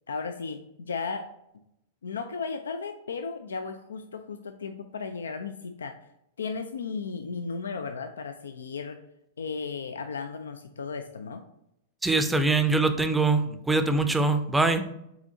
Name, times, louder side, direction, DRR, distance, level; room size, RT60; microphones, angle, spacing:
voice 1, 0.1-1.3 2.0-5.9 6.4-9.0 9.4-11.4, left 5 dB, 75° left, 7 dB, 0.3 m, -35 dB
voice 2, 12.0-14.8, right 3 dB, 5° right, 8 dB, 0.5 m, -23 dB
4.8 x 3.9 x 2.8 m, 0.79 s
figure-of-eight pair, 100°, 0 cm